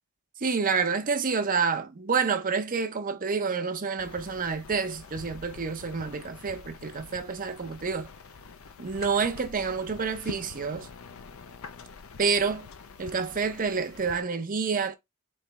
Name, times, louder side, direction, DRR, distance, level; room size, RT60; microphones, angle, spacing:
voice 1, 0.4-8.1 8.8-10.9 12.2-12.7 13.0-15.0, right 5 dB, 40° right, 0.6 m, -28 dB
sound 1, 4.0-14.2, left 4 dB, 70° left, 0.6 m, -45 dB
4.2 x 3.1 x 3.3 m
head